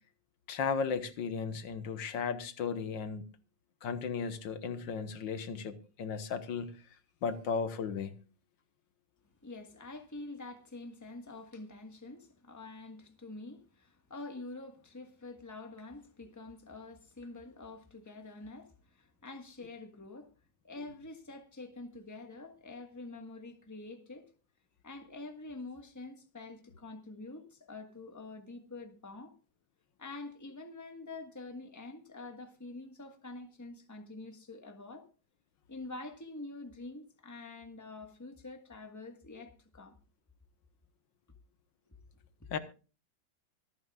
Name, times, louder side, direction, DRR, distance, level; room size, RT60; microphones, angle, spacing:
voice 1, 0.5-3.3 3.8-6.7 7.2-8.1 42.5-42.6, left 5 dB, 90° left, 1.9 m, -35 dB
voice 2, 9.4-20.3 20.6-24.2 24.8-29.3 30.0-35.1 35.7-40.0 41.9-42.0, left 2 dB, 10° left, 1.3 m, -46 dB
25.0 x 9.4 x 2.4 m
omnidirectional pair, 1.9 m